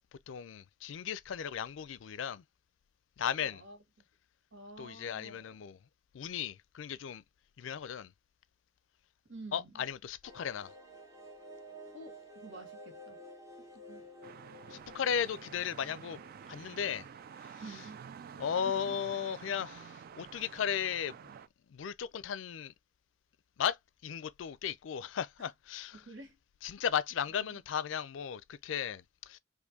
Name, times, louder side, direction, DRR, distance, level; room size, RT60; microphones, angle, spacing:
voice 1, 0.3-2.4 3.2-3.6 4.8-5.8 6.1-7.2 7.6-8.1 9.5-10.7 14.7-16.2 16.5-17.1 18.4-21.3 21.7-22.7 23.6-23.8 24.0-26.0 26.6-29.4, left 8 dB, 85° left, 0.4 m, -36 dB
voice 2, 3.4-3.8 4.5-5.6 9.3-9.8 11.9-13.2 13.6-14.1 17.6-18.0 18.6-19.0 25.9-26.4 27.3-27.6, right 2 dB, 85° right, 1.2 m, -50 dB
sound 1, 10.2-17.7 18.0-18.1 18.3-18.4, equal, 20° right, 1.2 m, -53 dB
sound 2, 14.2-21.5, right 7 dB, 50° right, 0.3 m, -50 dB
4.3 x 2.6 x 2.7 m
head